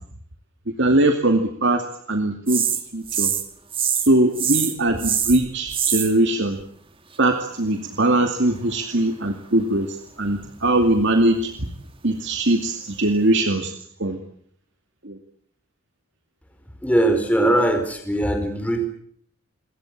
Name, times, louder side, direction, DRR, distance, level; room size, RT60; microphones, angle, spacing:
voice 1, 0.8-1.8 2.1-2.6 2.9-3.3 4.1-6.6 7.2-11.5 12.0-13.7 14.0-14.2 15.0-15.2, right 1 dB, 55° right, 5 dB, 2.4 m, -21 dB
sound 1, 2.5-3.5 3.7-4.1 4.3-6.1 10.2-11.2 11.7-11.8, right 8 dB, 25° right, 2.5 m, -24 dB
voice 2, 16.8-18.8, right 1 dB, 5° left, 5 dB, 4.6 m, -20 dB
28.5 x 22.5 x 7.5 m, 0.66 s
head